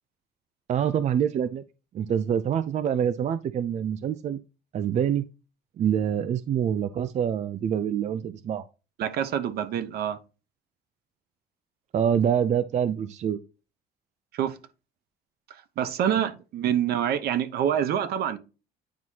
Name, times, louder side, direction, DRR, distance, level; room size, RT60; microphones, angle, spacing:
voice 1, 0.7-1.6 1.9-4.4 4.7-5.3 5.8-8.6 11.9-13.4, right 8 dB, 45° right, 0.4 m, -26 dB
voice 2, 9.0-10.2 14.3-14.6 15.8-18.4, right 9 dB, 70° right, 0.9 m, -26 dB
9.3 x 4.5 x 2.8 m
cardioid pair, 110°, 17 cm